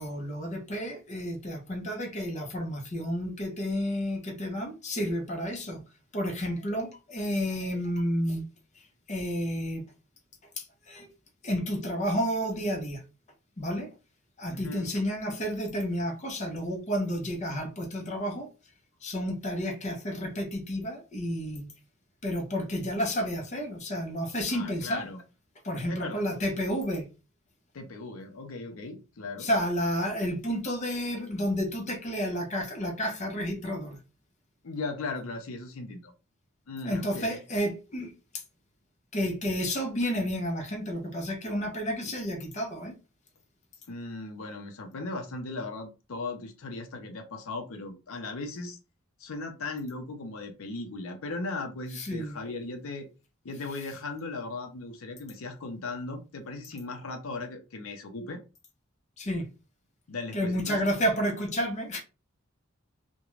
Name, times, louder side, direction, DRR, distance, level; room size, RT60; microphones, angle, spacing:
voice 1, 0.0-5.8 6.1-8.4 9.1-9.8 10.6-11.1 11.4-13.0 13.6-13.9 14.4-18.5 19.0-21.7 22.2-25.1 25.6-27.1 29.4-34.0 36.8-38.1 39.1-42.9 51.9-52.4 59.2-59.5 60.3-62.0, equal, 35° left, 0.7 m, -31 dB
voice 2, 14.5-14.9 24.5-25.2 25.9-26.2 27.7-29.5 34.6-36.1 36.7-37.4 43.9-48.8 49.2-53.1 53.4-58.4 60.1-60.8, left 3 dB, 85° left, 0.5 m, -37 dB
2.4 x 2.1 x 3.0 m
head